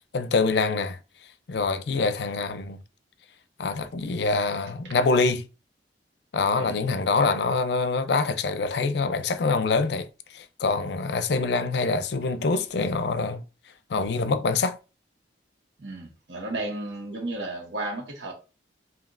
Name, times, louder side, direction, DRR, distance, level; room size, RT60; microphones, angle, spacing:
voice 1, 0.1-1.0 1.5-2.8 3.6-5.5 6.3-13.4 13.9-14.8, left 4 dB, 70° left, 0.4 m, -25 dB
voice 2, 15.8-18.3, right 2 dB, 80° right, 1.4 m, -33 dB
5.1 x 2.8 x 2.5 m
head